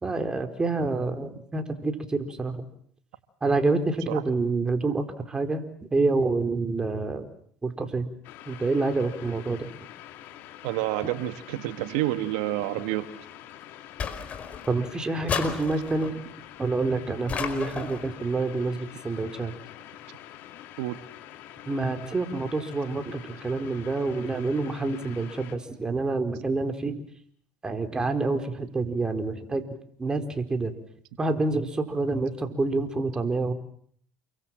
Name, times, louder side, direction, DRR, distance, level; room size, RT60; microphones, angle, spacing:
voice 1, 0.0-2.7 3.4-5.6 5.9-7.3 7.6-8.1 8.5-9.7 14.7-16.1 16.6-19.5 21.7-27.0 27.6-29.7 30.0-30.7 31.2-33.5, right 3 dB, 20° right, 7 dB, 4.4 m, -27 dB
sound 1, 8.2-25.6, left 12 dB, 65° left, 3.9 m, -46 dB
voice 2, 10.6-13.1 15.5-15.6 20.8-21.0, right 15 dB, 80° right, 10 dB, 1.7 m, -29 dB
sound 2, 14.0-14.8 15.3-16.2 17.3-18.1, left 7 dB, 40° left, 5.1 m, -32 dB
29.0 x 24.0 x 7.7 m, 0.62 s
supercardioid pair, 90°, 4 cm